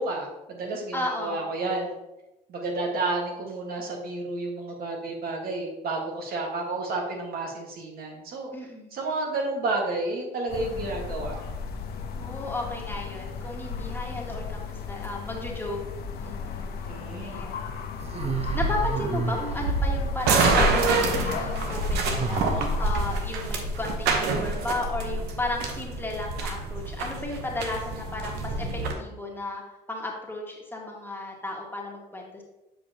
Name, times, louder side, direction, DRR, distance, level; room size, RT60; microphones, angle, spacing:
voice 1, 0.0-2.0 2.5-8.5 8.9-11.4 16.9-17.4, right 2 dB, 65° right, 0 dB, 1.5 m, -31 dB
voice 2, 0.9-1.4 8.5-8.9 12.2-15.8 16.2-16.7 17.2-17.6 18.5-29.6 29.9-32.4, left 2 dB, 10° left, -2 dB, 1.7 m, -34 dB
sound 1, 10.5-23.3, left 5 dB, 70° left, 0.8 m, -34 dB
sound 2, 18.0-20.5 21.9-23.3, right 2 dB, 40° right, 0.7 m, -28 dB
sound 3, 20.2-28.9, right 4 dB, 80° right, 0.9 m, -27 dB
7.8 x 5.0 x 2.9 m, 0.98 s
supercardioid pair, 75°, 17 cm